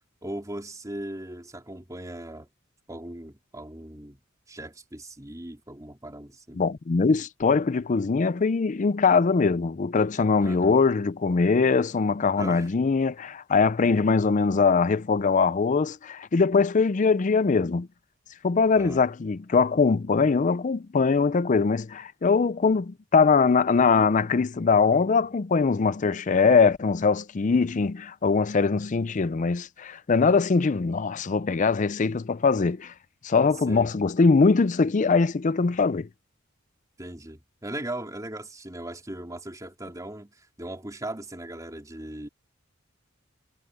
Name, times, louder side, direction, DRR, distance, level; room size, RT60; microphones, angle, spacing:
voice 1, 0.2-2.5 2.9-4.2 4.5-6.6 10.4-10.7 12.4-12.7 13.8-13.9 18.7-19.0 33.7-33.9 37.0-42.3, right 1 dB, 15° right, 3.5 m, -38 dB
voice 2, 6.6-17.9 18.4-32.9 33.2-36.1, left 4 dB, 40° left, 0.4 m, -22 dB
head